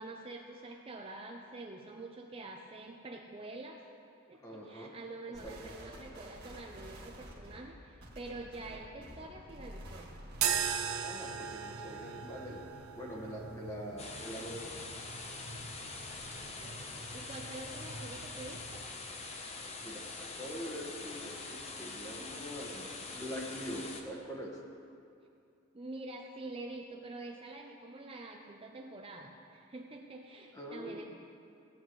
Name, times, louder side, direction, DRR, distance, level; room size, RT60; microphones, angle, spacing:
voice 1, 0.0-3.8 4.3-10.1 16.3-18.9 25.7-31.0, right 2 dB, 25° right, 1 dB, 0.5 m, -46 dB
voice 2, 4.4-4.9 5.4-5.7 11.0-12.6 13.0-14.7 19.8-24.5 30.5-31.1, equal, 15° left, -2 dB, 1.4 m, -43 dB
sound 1, 5.3-10.8, equal, 50° right, 1.8 m, -50 dB
sound 2, 10.3-18.9, right 7 dB, 85° right, 0.6 m, -40 dB
sound 3, 14.0-24.0, left 3 dB, 30° left, 0.7 m, -44 dB
16.5 x 9.2 x 3.1 m, 2.5 s
head